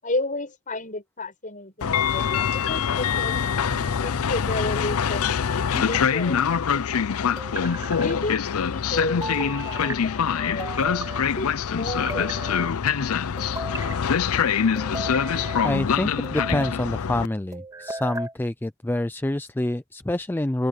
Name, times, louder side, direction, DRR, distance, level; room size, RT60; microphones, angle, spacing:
voice 1, 0.0-3.4 4.0-6.8 8.0-8.4 8.7-10.8 11.2-12.7, left 2 dB, 40° left, 7.7 m, -32 dB
Train, 1.8-17.3, left 7 dB, 90° left, 0.6 m, -24 dB
sound 1, 3.7-4.4 5.7-6.5 7.4-8.1 9.2-10.0 10.6-11.2 11.9-12.7 13.4-14.0 14.8-15.7 16.2-16.8 17.5-18.3, right 2 dB, 15° right, 2.3 m, -35 dB
voice 2, 15.6-20.7, left 1 dB, 10° left, 0.4 m, -27 dB
open air
head